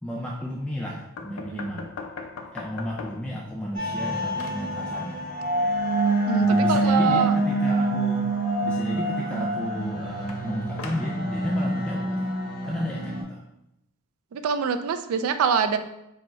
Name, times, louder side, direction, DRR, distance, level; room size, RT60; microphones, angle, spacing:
voice 1, 0.0-1.9 2.5-5.3 6.4-8.3 8.6-12.3 12.6-13.4, equal, 5° left, -4 dB, 0.3 m, -33 dB
sound 1, 1.2-3.4 3.8-4.7 10.3-11.2, left 4 dB, 80° left, 0.5 m, -39 dB
sound 2, 3.7-13.2, right 2 dB, 40° left, 1.1 m, -26 dB
voice 2, 6.3-7.3 12.8-13.0 14.3-15.8, right 6 dB, 90° right, 9 dB, 0.3 m, -25 dB
4.2 x 2.2 x 4.5 m, 0.84 s
head